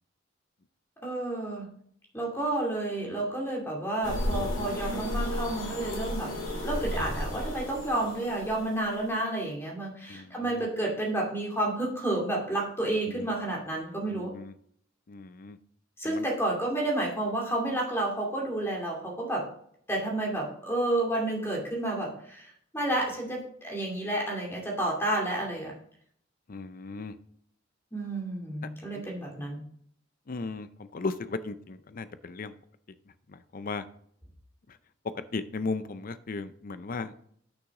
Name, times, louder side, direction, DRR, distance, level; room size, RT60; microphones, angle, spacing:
voice 1, 1.0-1.7 2.1-6.3 6.6-14.3 16.0-19.5 19.9-25.7 27.9-29.6, right 1 dB, 15° left, -2 dB, 2.4 m, -30 dB
sound 1, 4.0-9.1, equal, 75° left, 2.5 m, -33 dB
voice 2, 10.1-10.7 13.1-13.3 14.1-14.5 15.1-15.6 16.0-16.3 26.5-27.1 28.6-29.0 30.3-32.5 33.3-33.8 34.7-34.8 35.3-37.1, left 3 dB, 45° left, 13 dB, 0.5 m, -36 dB
6.3 x 6.2 x 4.8 m, 0.64 s
head